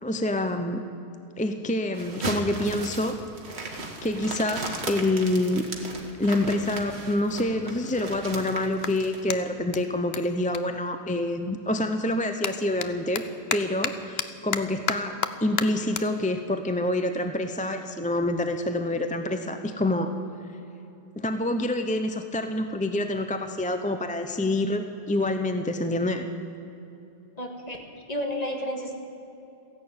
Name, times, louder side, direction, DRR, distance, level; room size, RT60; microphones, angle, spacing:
voice 1, 0.0-0.8 1.4-3.2 4.0-5.7 6.2-13.2 13.5-20.1 21.2-26.3, left 1 dB, 10° left, 7 dB, 0.6 m, -27 dB
sound 1, 1.9-9.2, right 2 dB, 90° right, 1.9 m, -36 dB
Clapping, 8.8-11.5 11.8-18.5, left 7 dB, 75° left, 1.0 m, -35 dB
voice 2, 27.4-27.8 28.1-28.9, left 1 dB, 40° left, 2 dB, 2.0 m, -31 dB
15.0 x 11.0 x 8.7 m, 2.9 s
omnidirectional pair, 1.1 m